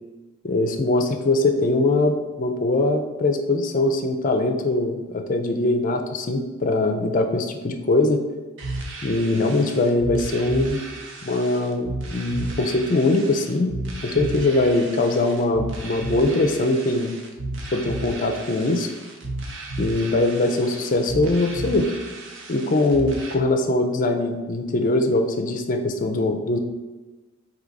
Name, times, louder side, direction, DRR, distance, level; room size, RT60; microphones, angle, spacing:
voice 1, 0.4-8.3 9.0-10.8 11.2-13.8 14.0-17.1 17.7-18.9 19.8-21.9 22.5-26.6, left 2 dB, 40° left, 6 dB, 0.4 m, -22 dB
sound 1, 8.6-23.3, right 2 dB, 55° right, 0.7 m, -33 dB
4.6 x 2.8 x 4.0 m, 1.2 s
head